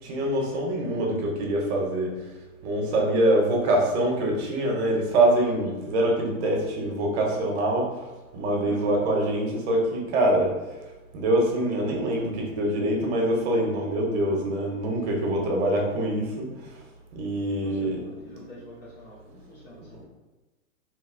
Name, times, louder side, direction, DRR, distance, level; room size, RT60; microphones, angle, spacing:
voice 1, 0.0-2.1 2.6-8.1 8.3-10.5 11.1-16.8 17.1-18.0, right 1 dB, 50° right, 0 dB, 0.9 m, -24 dB
voice 2, 8.6-9.0 17.6-20.0, left 1 dB, 50° left, -8 dB, 1.2 m, -45 dB
2.9 x 2.8 x 2.5 m, 1.1 s
hypercardioid pair, 115°, 40 cm